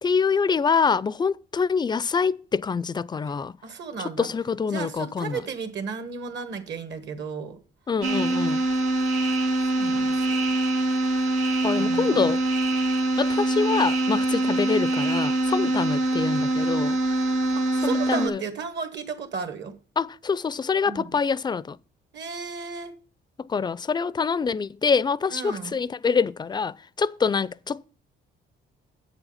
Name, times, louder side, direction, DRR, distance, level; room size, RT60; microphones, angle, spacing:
voice 1, 0.0-3.5 4.2-5.4 7.9-8.6 11.6-12.4 13.2-17.0 17.8-18.4 20.0-21.8 23.5-27.8, left 5 dB, 20° left, 0.3 m, -25 dB
voice 2, 3.6-4.3 4.7-7.6 9.7-10.4 11.8-12.3 17.5-19.7 20.8-21.1 22.1-22.9 25.3-25.7, right 5 dB, 65° right, 1.5 m, -34 dB
sound 1, 8.0-18.3, right 2 dB, 85° right, 1.2 m, -24 dB
7.8 x 7.1 x 5.6 m
cardioid pair, 90°, 20 cm